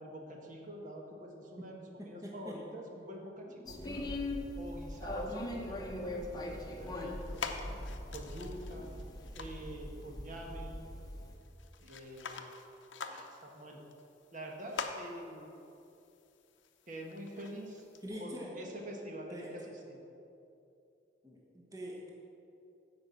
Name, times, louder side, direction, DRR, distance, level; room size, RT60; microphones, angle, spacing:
voice 1, 0.0-4.2 4.6-6.3 6.8-7.7 8.1-8.9 9.4-10.7 11.8-12.4 13.1-13.8 14.3-15.4 16.9-17.8 18.1-19.4 19.9-20.0, equal, 45° right, 0 dB, 1.2 m, -46 dB
voice 2, 2.0-2.6 3.6-4.1 8.7-8.9 18.0-18.6 19.3-19.7 21.2-22.1, equal, 20° right, -3 dB, 1.1 m, -45 dB
sound 1, 3.7-11.3, left 1 dB, 20° left, 0.9 m, -41 dB
sound 2, 6.5-18.1, left 5 dB, 85° left, 0.7 m, -47 dB
9.7 x 5.4 x 7.5 m, 2.7 s
head